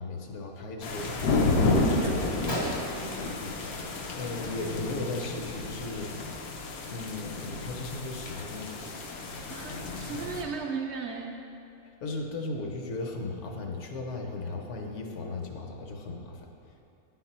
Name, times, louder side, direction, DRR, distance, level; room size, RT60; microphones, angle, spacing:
voice 1, 0.0-2.2 4.1-6.2 6.4-6.6 6.9-8.8 12.0-16.5, left 3 dB, 65° left, 2 dB, 0.9 m, -36 dB
sound 1, 0.8-10.4, left 3 dB, 85° left, 1.2 m, -31 dB
voice 2, 1.8-3.4 9.5-11.4, right 5 dB, 65° right, 1 dB, 0.7 m, -37 dB
Gunshot gunfire, 2.5-4.1 4.4-4.8 5.0-5.2 6.0-6.2 6.8-6.9 7.3-8.9, left 1 dB, 35° left, 0.4 m, -39 dB
9.5 x 3.9 x 4.2 m, 2.6 s
omnidirectional pair, 1.5 m